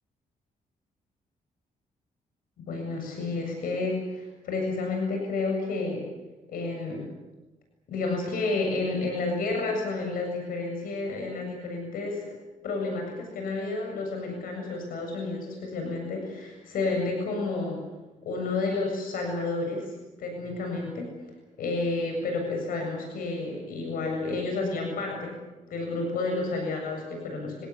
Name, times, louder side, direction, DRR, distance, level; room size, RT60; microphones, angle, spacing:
voice 1, 2.7-6.0 6.5-7.1 7.9-12.3 12.6-17.8 18.2-19.9 20.2-21.1 21.6-25.3 25.7-27.7, left 3 dB, 90° left, 2 dB, 7.5 m, -30 dB
26.0 x 18.5 x 9.9 m, 1.1 s
cardioid pair, 140°, 14 cm